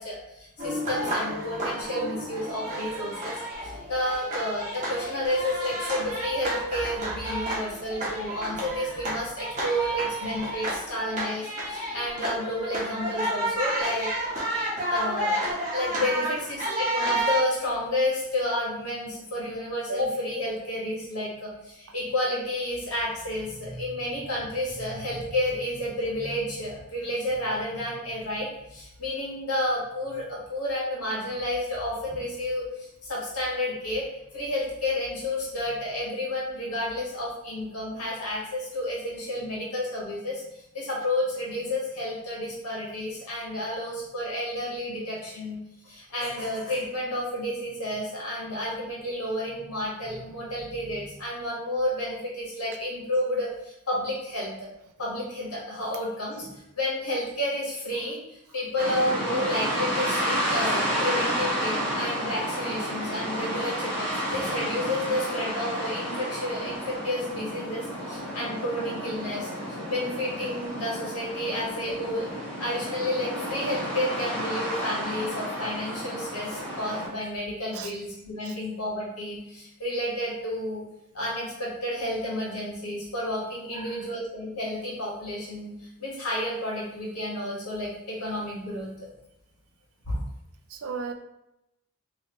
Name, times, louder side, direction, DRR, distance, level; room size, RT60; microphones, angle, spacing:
voice 1, 0.0-14.1 14.9-34.0 34.3-54.7 55.0-72.3 72.6-80.8 81.1-88.9 90.1-90.2, left 1 dB, 85° left, -5 dB, 1.4 m, -31 dB
sound 1, 0.6-17.4, right 1 dB, 35° right, 0.8 m, -31 dB
sound 2, 58.8-77.1, equal, 10° left, 1.2 m, -31 dB
voice 2, 90.7-91.1, right 6 dB, 75° right, 5 dB, 0.4 m, -36 dB
3.1 x 2.7 x 3.0 m, 0.85 s
head